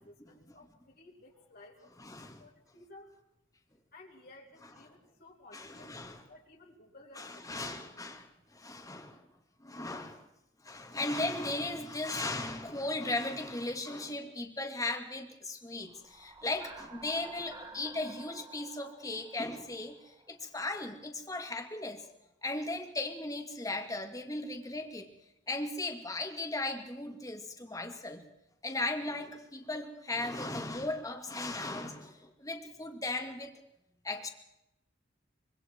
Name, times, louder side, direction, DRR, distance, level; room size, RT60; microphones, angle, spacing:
voice 1, 0.0-3.1 3.9-7.7, left 2 dB, 55° left, -2 dB, 3.7 m, -56 dB
voice 2, 2.0-2.4 5.5-6.2 7.2-9.3 9.6-10.3 10.6-22.1 22.4-25.1 25.5-28.2 28.6-33.5 34.0-34.3, left 2 dB, 20° left, 4 dB, 2.4 m, -37 dB
sound 1, 15.8-20.5, right 4 dB, 20° right, 1.3 m, -51 dB
25.5 x 24.5 x 4.7 m, 0.86 s
head